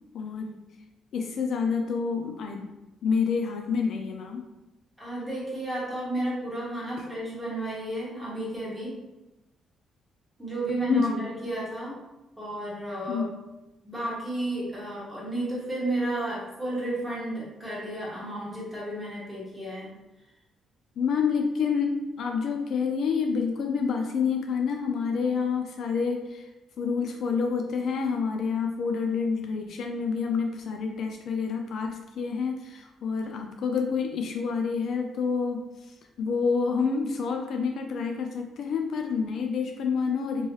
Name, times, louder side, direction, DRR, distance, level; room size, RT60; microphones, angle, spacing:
voice 1, 0.1-0.6 1.1-2.7 3.0-4.4 7.0-7.1 10.9-11.3 13.1-13.3 21.0-26.5 26.8-40.5, left 5 dB, 65° left, 3 dB, 0.3 m, -28 dB
voice 2, 5.0-8.9 10.4-12.0 12.4-13.3 13.8-19.9, right 1 dB, 5° right, -7 dB, 1.5 m, -32 dB
3.0 x 2.7 x 3.0 m, 1.0 s
cardioid pair, 90°, 0 cm